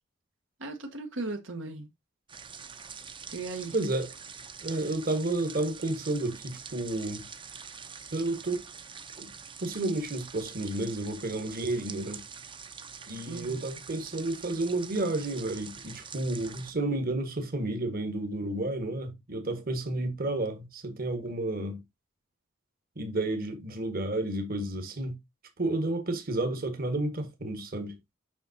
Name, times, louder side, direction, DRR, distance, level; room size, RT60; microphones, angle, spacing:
voice 1, 0.6-1.9 3.3-3.8 13.3-13.6, right 3 dB, 80° right, 1.2 m, -37 dB
sound 1, 2.3-16.7, right 6 dB, 25° right, 0.6 m, -45 dB
voice 2, 3.7-4.1 4.6-7.2 8.1-8.6 9.2-9.3 9.6-12.2 13.1-21.8 22.9-25.2 25.6-28.0, right 2 dB, 50° right, 1.4 m, -31 dB
7.1 x 5.9 x 2.7 m
head